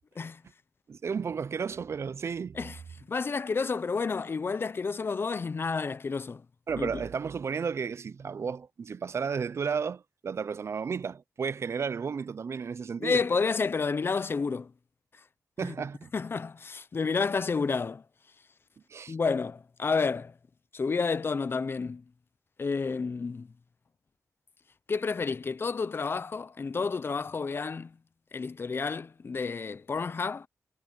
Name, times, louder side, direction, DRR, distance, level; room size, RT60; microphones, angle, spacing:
voice 1, 0.9-2.6 6.7-13.2 15.6-16.1 18.9-19.2, right 6 dB, 55° right, 0.4 m, -33 dB
voice 2, 3.1-6.4 6.8-7.0 13.0-14.7 15.6-15.7 16.1-18.0 19.1-20.3 20.7-22.0 22.6-23.5 24.9-27.9 28.3-30.5, left 4 dB, 45° left, 0.6 m, -30 dB
wide cardioid pair, 115°, 6 cm